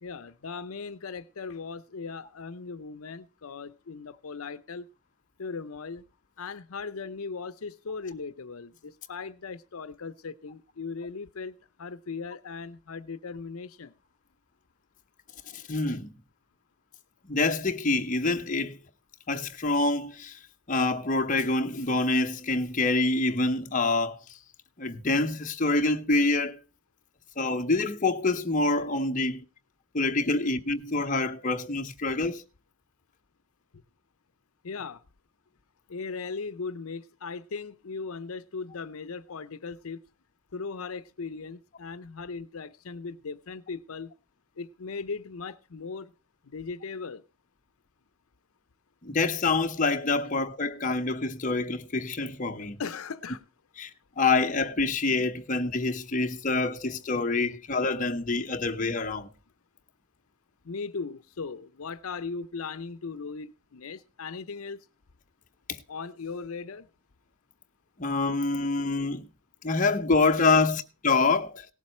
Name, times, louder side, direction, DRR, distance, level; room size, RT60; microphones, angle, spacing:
voice 1, 0.0-4.9 5.4-6.0 6.4-13.9 34.6-35.0 35.9-40.0 40.5-44.1 44.6-46.1 46.4-47.2 52.8-53.4 60.6-64.8 65.9-66.9, left 4 dB, 80° left, 0.6 m, -38 dB
voice 2, 15.5-16.1 17.3-18.8 19.3-20.4 20.7-24.2 24.8-26.6 27.4-29.4 29.9-32.4 49.0-52.8 53.8-53.9 54.2-59.3 65.7-65.8 68.0-69.3 69.6-71.7, left 3 dB, 35° left, 0.9 m, -26 dB
18.0 x 7.4 x 4.4 m
head